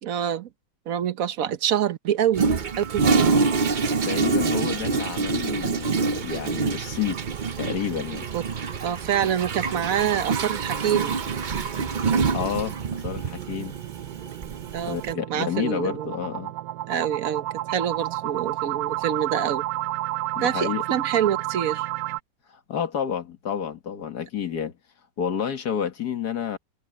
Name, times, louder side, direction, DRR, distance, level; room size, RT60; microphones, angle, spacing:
voice 1, 0.0-0.5 0.9-3.1 8.3-8.4 8.8-11.2 14.7-16.1 16.9-19.6 20.4-21.9, right 9 dB, 55° right, 1.2 m, -26 dB
Toilet flush, 2.3-15.1, right 4 dB, 90° right, 0.4 m, -26 dB
sound 1, 2.6-4.1 4.5-4.6 4.9-5.0 5.5-5.6 10.4-22.2, right 16 dB, 75° right, 0.8 m, -32 dB
voice 2, 4.0-7.2 7.6-8.3 12.3-13.7 14.8-16.5 20.4-20.8 22.5-24.7 25.2-26.6, left 8 dB, 60° left, 2.0 m, -30 dB
omnidirectional pair, 2.0 m